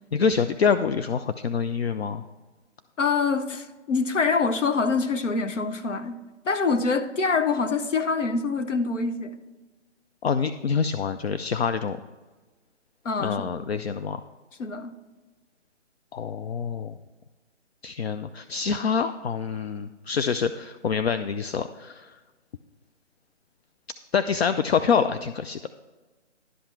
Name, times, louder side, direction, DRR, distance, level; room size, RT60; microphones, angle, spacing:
voice 1, 0.1-2.2 10.2-12.0 13.2-14.2 16.1-17.0 17.8-22.2 24.1-25.6, left 6 dB, 60° left, 10 dB, 0.5 m, -26 dB
voice 2, 3.0-6.2 6.4-9.3 13.0-13.5 14.6-14.9, left 4 dB, 80° left, 10 dB, 1.0 m, -25 dB
11.5 x 5.7 x 4.6 m, 1.2 s
figure-of-eight pair, 155°, 36 cm